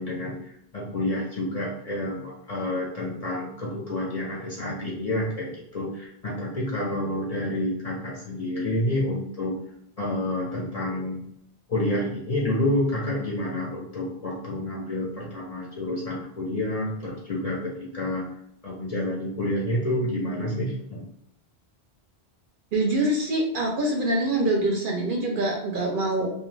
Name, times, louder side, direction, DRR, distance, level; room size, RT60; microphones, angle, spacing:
voice 1, 0.0-9.6 10.0-11.2 11.7-18.3 18.6-21.0, left 1 dB, 45° left, -4 dB, 0.6 m, -29 dB
voice 2, 22.7-26.3, right 1 dB, 60° right, 0 dB, 0.6 m, -25 dB
2.3 x 2.2 x 3.1 m, 0.74 s
omnidirectional pair, 1.1 m